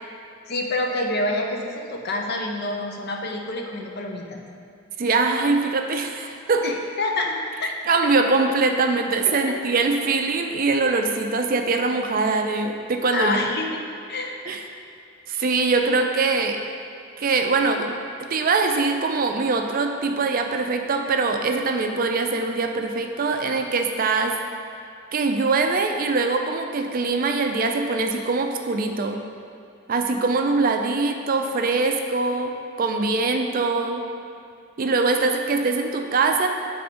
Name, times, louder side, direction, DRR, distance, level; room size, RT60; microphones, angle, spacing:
voice 1, 0.5-4.4 6.6-7.7 8.2-8.3 9.5-9.6 13.1-13.8 14.1-14.4, left 2 dB, 55° left, 2 dB, 0.7 m, -27 dB
voice 2, 5.0-6.8 7.9-13.4 14.5-14.6 15.3-16.6 17.2-17.9 18.2-24.4 25.1-29.2 29.9-34.0 34.8-36.5, right 3 dB, 45° right, 4 dB, 0.4 m, -23 dB
7.4 x 3.4 x 5.1 m, 2.5 s
head